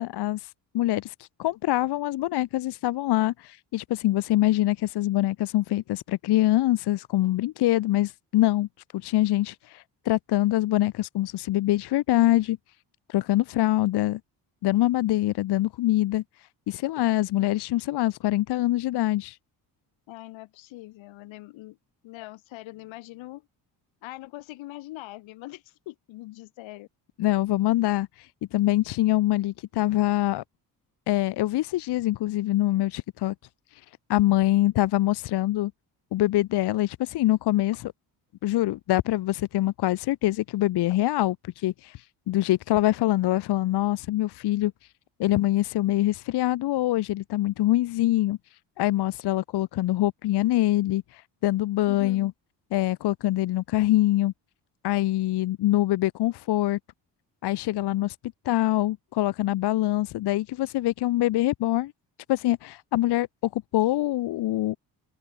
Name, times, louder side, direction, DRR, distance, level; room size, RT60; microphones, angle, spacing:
voice 1, 0.0-8.7 8.9-12.6 13.1-14.2 14.6-16.2 16.7-19.4 27.2-30.4 31.1-33.3 33.7-33.8 34.1-35.7 36.1-37.8 38.4-44.7 45.2-48.4 48.8-52.3 52.7-54.3 54.8-56.8 57.4-58.2 58.4-61.9 62.3-63.3 63.5-64.8, left 15 dB, 60° left, 0.7 m, -24 dB
voice 2, 20.1-21.8 22.0-23.5 24.0-26.9 51.9-52.3, left 18 dB, 80° left, 1.5 m, -42 dB
open air
supercardioid pair, 65°, 45 cm